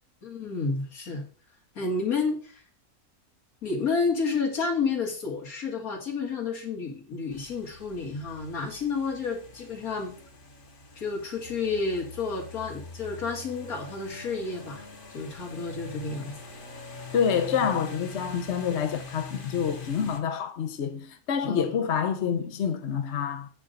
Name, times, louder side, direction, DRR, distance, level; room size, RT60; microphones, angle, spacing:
voice 1, 0.2-1.3 1.8-2.6 3.6-10.1 11.0-14.8 15.1-16.3 21.4-21.8, left 4 dB, 70° left, 2.4 m, -30 dB
sound 1, 7.3-20.2, left 3 dB, 40° left, 1.2 m, -44 dB
voice 2, 17.1-23.5, left 7 dB, 55° left, 0.9 m, -27 dB
8.7 x 3.8 x 6.6 m
omnidirectional pair, 1.6 m